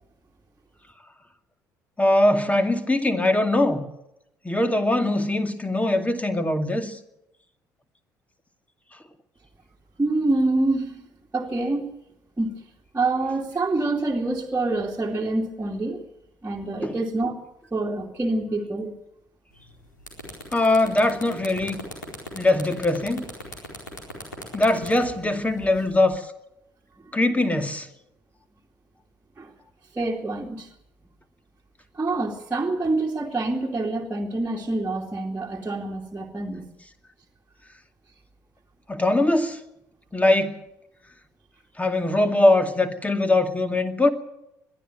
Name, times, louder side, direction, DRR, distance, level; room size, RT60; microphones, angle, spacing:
voice 1, 2.0-3.9 4.4-7.0 16.8-17.0 20.5-21.8 22.3-23.3 24.5-26.3 27.1-27.9 38.9-39.6 40.1-40.6 41.8-44.1, left 2 dB, 15° left, 2.3 m, -21 dB
voice 2, 10.0-11.0 11.3-11.9 12.4-12.5 12.9-16.0 16.4-17.4 17.7-18.9 29.4-29.5 29.9-30.7 31.9-36.6, right 2 dB, 20° right, 2.6 m, -26 dB
sound 1, 19.6-19.7 20.0-26.1, left 1 dB, 85° left, 4.3 m, -38 dB
22.0 x 13.5 x 9.3 m
figure-of-eight pair, 50°, 10 cm